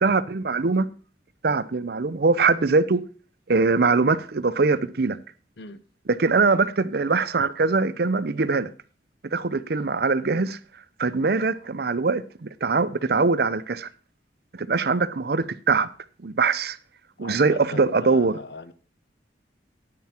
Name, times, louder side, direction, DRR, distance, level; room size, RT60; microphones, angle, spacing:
voice 1, 0.0-0.9 1.4-3.0 3.5-5.2 6.2-8.7 9.3-10.6 11.0-13.9 14.5-15.9 16.2-16.8 17.2-18.3, right 4 dB, 55° right, 0.6 m, -22 dB
voice 2, 17.2-18.7, left 2 dB, 65° left, 0.9 m, -39 dB
9.4 x 9.3 x 4.4 m
head